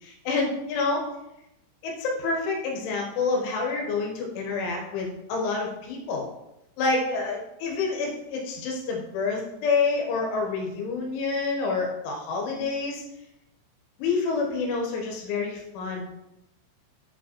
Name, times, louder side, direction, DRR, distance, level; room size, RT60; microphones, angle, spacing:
voice 1, 0.0-1.0 1.8-6.3 6.8-13.0 14.0-16.1, left 4 dB, 80° left, 0 dB, 3.5 m, -28 dB
8.1 x 5.0 x 4.4 m, 0.88 s
omnidirectional pair, 5.5 m